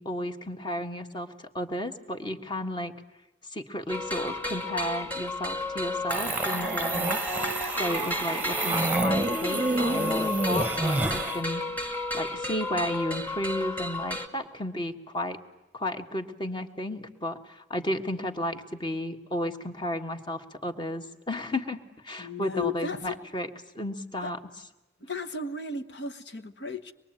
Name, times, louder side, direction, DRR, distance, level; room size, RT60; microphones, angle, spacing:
voice 1, 0.0-2.9 3.5-7.2 7.8-11.6 12.1-15.4 15.7-23.5 23.7-24.4, left 1 dB, 25° left, 7 dB, 1.5 m, -33 dB
sound 1, 3.9-14.3, left 1 dB, 10° left, 1.9 m, -33 dB
sound 2, 6.1-11.4, right 2 dB, 10° right, 1.1 m, -28 dB
voice 2, 22.2-23.2 24.2-24.3 25.0-26.9, left 4 dB, 60° left, 8 dB, 1.4 m, -35 dB
24.5 x 22.0 x 9.0 m, 1.0 s
head